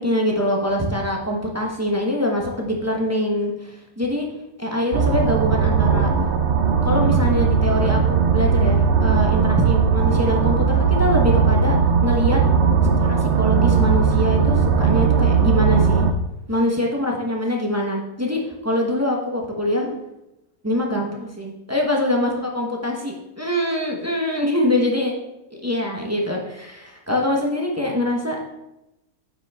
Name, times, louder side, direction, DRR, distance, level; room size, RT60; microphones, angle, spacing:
voice 1, 0.0-4.2 4.6-6.1 6.8-11.8 12.0-12.4 13.0-16.0 16.5-19.9 20.6-25.1 25.6-28.4, left 1 dB, 10° right, -1 dB, 0.8 m, -24 dB
sound 1, 4.9-16.1, right 6 dB, 60° right, 0.7 m, -18 dB
9.2 x 5.4 x 3.5 m, 0.93 s
omnidirectional pair, 1.7 m